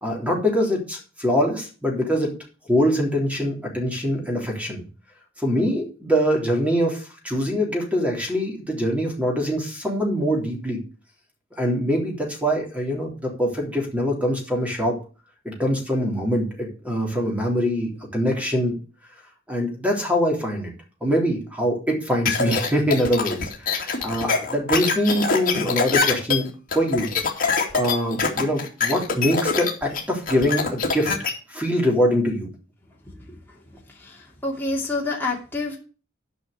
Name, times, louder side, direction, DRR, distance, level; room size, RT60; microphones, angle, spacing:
voice 1, 0.0-2.3 2.7-4.8 5.4-10.8 11.6-15.0 15.5-18.8 19.5-20.7 21.0-27.1 27.7-31.1 31.5-32.5, equal, 5° right, 0 dB, 3.4 m, -23 dB
sound 1, 22.3-31.3, left 4 dB, 45° left, 2.4 m, -24 dB
voice 2, 33.1-33.4 34.0-35.8, left 2 dB, 10° left, -3 dB, 2.5 m, -28 dB
11.0 x 5.6 x 6.7 m, 0.35 s
head